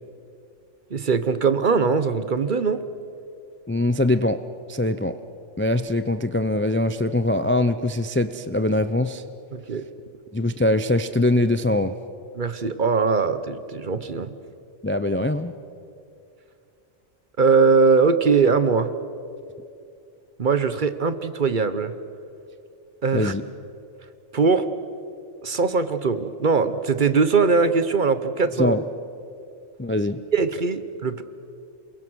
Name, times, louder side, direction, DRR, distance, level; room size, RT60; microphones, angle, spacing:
voice 1, 0.9-2.8 9.5-9.9 12.3-14.3 17.4-18.9 20.4-21.9 23.0-23.3 24.3-24.7 25.4-28.8 30.3-31.2, right 4 dB, 45° right, 12 dB, 1.0 m, -21 dB
voice 2, 3.7-4.4 4.7-5.1 5.6-9.2 10.3-11.9 14.8-15.5 23.1-23.4 28.6-28.8 29.8-30.2, left 1 dB, 15° left, 11 dB, 0.4 m, -22 dB
28.5 x 22.0 x 6.3 m, 2.5 s
omnidirectional pair, 1.2 m